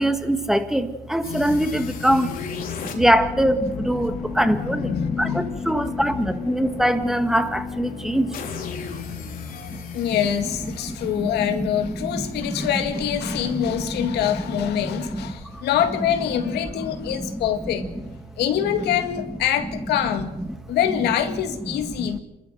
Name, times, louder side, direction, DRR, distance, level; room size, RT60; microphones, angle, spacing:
voice 1, 0.0-2.3 2.9-8.3 9.7-9.8 10.8-12.7 13.2-15.6 16.8-17.4 17.8-17.9 22.0-22.1, right 1 dB, 5° right, 1.7 m, -24 dB
sound 1, 1.2-12.2, left 6 dB, 55° left, 3.2 m, -34 dB
voice 2, 4.1-5.6 9.5-17.9 18.4-20.3 20.7-22.2, left 10 dB, 80° left, 2.1 m, -25 dB
28.0 x 13.5 x 7.9 m
cardioid pair, 110°, 17 cm